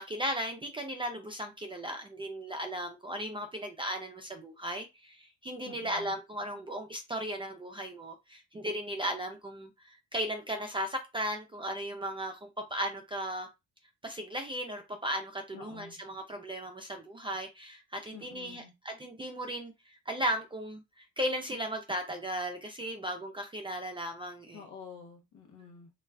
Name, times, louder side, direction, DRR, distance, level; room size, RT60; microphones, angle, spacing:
voice 1, 0.0-13.5 14.0-24.6, equal, 15° right, 0.4 m, -36 dB
voice 2, 5.6-6.2 15.5-16.0 18.1-18.7 24.5-26.0, left 6 dB, 75° left, 0.8 m, -49 dB
2.3 x 2.2 x 3.3 m
cardioid pair, 90°, 30 cm